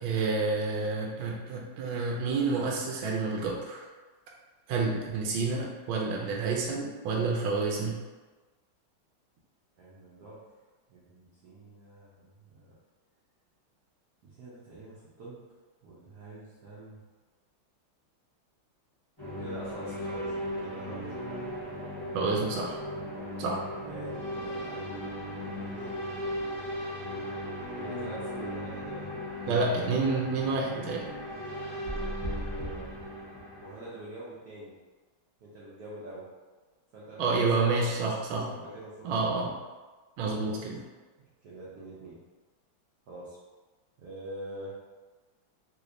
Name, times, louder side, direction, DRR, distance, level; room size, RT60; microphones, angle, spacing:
voice 1, 0.0-3.9 4.7-8.0 22.1-22.8 23.4-23.6 29.5-31.1 37.2-38.5 39.0-39.5 40.2-40.8, right 3 dB, 80° right, -1 dB, 1.3 m, -29 dB
voice 2, 9.8-10.4 10.9-12.7 14.2-15.4 15.8-17.0 19.4-21.2 22.5-22.7 23.8-25.1 25.4-25.9 27.7-29.2 31.9-32.9 33.6-34.7 35.4-36.2 36.9-39.5 40.4-40.7 41.4-42.2 43.1-43.4 44.0-44.7, right 1 dB, 65° right, -8 dB, 1.1 m, -45 dB
sound 1, 19.2-33.9, equal, 15° left, 1.3 m, -37 dB
3.4 x 3.0 x 2.5 m, 1.3 s
omnidirectional pair, 2.2 m